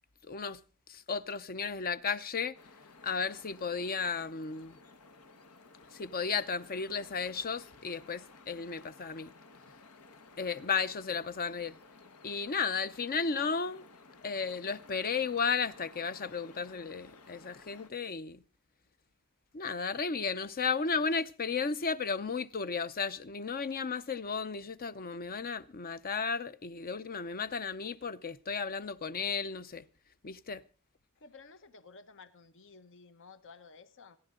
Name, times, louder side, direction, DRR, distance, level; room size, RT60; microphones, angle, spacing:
voice 1, 0.3-0.6 0.9-2.6 3.0-4.8 5.9-9.3 10.4-11.8 12.2-13.8 14.2-18.4 19.5-29.8 30.2-30.6, left 5 dB, 40° left, 0.7 m, -34 dB
sound 1, 2.5-17.9, left 3 dB, 85° left, 1.4 m, -56 dB
voice 2, 31.2-34.2, left 4 dB, 60° left, 1.2 m, -54 dB
27.0 x 11.0 x 3.8 m
head